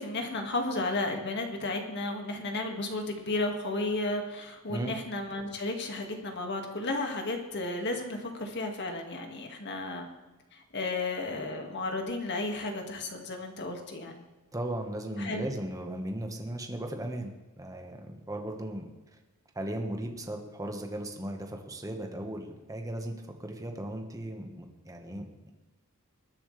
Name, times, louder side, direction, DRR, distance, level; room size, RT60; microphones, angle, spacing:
voice 1, 0.0-10.1 10.5-14.3 15.2-15.5, left 2 dB, 50° left, 3 dB, 2.1 m, -33 dB
voice 2, 14.5-18.9 19.5-25.3, right 1 dB, 15° right, 3 dB, 1.5 m, -37 dB
21.0 x 9.9 x 3.4 m, 1.1 s
head